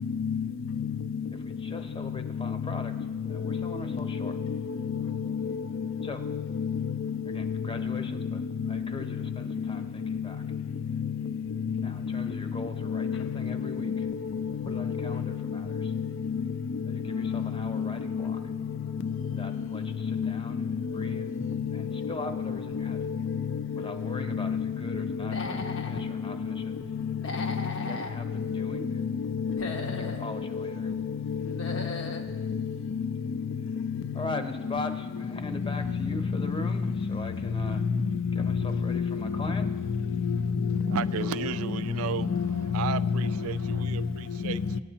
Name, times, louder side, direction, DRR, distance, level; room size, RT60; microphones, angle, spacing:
voice 1, 0.2-0.5 3.5-3.7 4.4-4.6 4.9-5.9 6.3-8.0 8.6-8.8 10.1-10.2 11.6-12.3 12.9-15.3 15.7-16.4 17.1-18.4 19.0-19.1 19.4-19.5 20.0-20.3 21.0-21.3 21.6-21.7 22.0-22.1 22.4-23.4 23.7-23.8 24.3-25.5 26.4-26.6 27.1-27.6 28.5-29.7 30.5-31.8 32.4-32.6 32.9-33.0 38.1-39.2 40.2-40.4 40.7-41.3 42.3-43.1, left 6 dB, 60° left, 0.4 m, -30 dB
voice 2, 1.4-2.9 3.3-4.4 6.0-6.3 7.2-8.4 8.7-10.4 11.8-14.1 14.6-15.9 16.9-18.4 19.3-21.3 21.7-23.0 23.8-26.8 27.8-28.9 29.9-30.9 34.1-37.8 38.3-39.7, left 2 dB, 25° left, 0.7 m, -40 dB
Human voice / Animal, 25.2-26.0 27.1-28.1 29.4-30.3 31.4-32.3, left 2 dB, 90° left, 1.0 m, -36 dB
voice 3, 40.9-44.6, right 8 dB, 80° right, 0.4 m, -34 dB
18.5 x 9.1 x 2.8 m
head